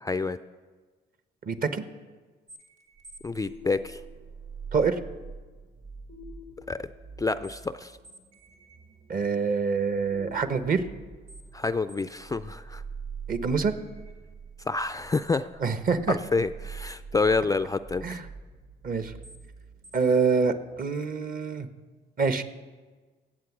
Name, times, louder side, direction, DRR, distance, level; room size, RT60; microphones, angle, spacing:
voice 1, 0.0-0.4 3.2-4.0 6.7-6.8 7.2-7.9 11.5-12.8 14.7-15.5 16.1-18.0, left 3 dB, 15° left, 11 dB, 0.3 m, -28 dB
voice 2, 1.4-1.8 4.7-5.0 9.1-10.8 13.3-13.8 15.6-16.2 18.0-18.3 18.8-19.1 19.9-21.7 22.2-22.4, right 5 dB, 45° right, 10 dB, 1.0 m, -26 dB
sound 1, 2.5-20.8, right 4 dB, 60° right, 2.0 m, -45 dB
16.0 x 7.9 x 6.0 m, 1.4 s
cardioid pair, 90°, 20 cm